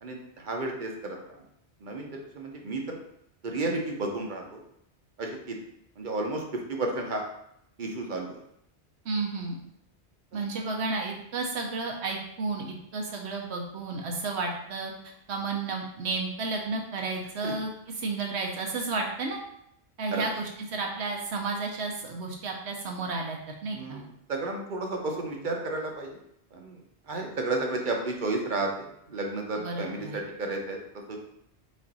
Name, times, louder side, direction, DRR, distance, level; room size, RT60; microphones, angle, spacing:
voice 1, 0.0-1.4 1.8-2.1 2.3-3.0 3.4-4.6 5.2-5.6 6.0-7.2 7.8-8.4 10.3-10.4 17.4-17.5 20.1-20.3 23.7-26.2 26.5-26.8 27.1-28.7 29.1-30.8 31.1-31.2, right 2 dB, 50° right, 1 dB, 0.8 m, -32 dB
voice 2, 9.0-9.6 10.3-19.4 20.0-24.0 29.5-30.2, right 3 dB, 80° right, 1 dB, 1.0 m, -32 dB
5.1 x 2.5 x 4.0 m, 0.74 s
omnidirectional pair, 1.1 m